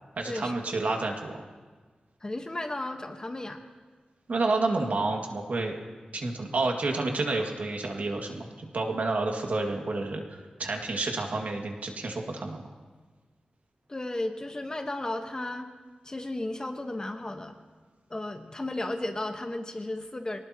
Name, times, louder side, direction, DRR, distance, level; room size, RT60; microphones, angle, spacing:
voice 1, 0.2-1.3 4.3-5.7 6.1-12.6, right 3 dB, 70° right, 2 dB, 2.1 m, -29 dB
voice 2, 2.2-3.6 13.9-15.7 16.0-17.6 18.1-20.4, left 1 dB, 25° left, 5 dB, 1.2 m, -34 dB
25.0 x 18.5 x 3.0 m, 1.4 s
wide cardioid pair, 110°, 3 cm